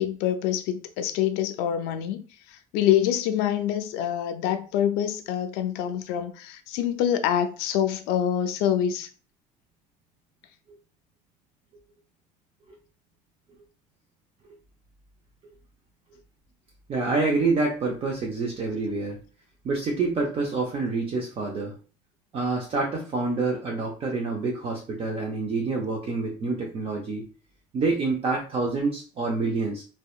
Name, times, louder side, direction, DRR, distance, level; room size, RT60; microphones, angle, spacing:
voice 1, 0.0-9.1, left 10 dB, 80° left, 0.4 m, -26 dB
voice 2, 16.9-19.2 19.6-21.7 22.3-27.3 27.7-29.8, right 3 dB, 35° right, 0.5 m, -27 dB
2.7 x 2.1 x 2.3 m
cardioid pair, 110°, 16 cm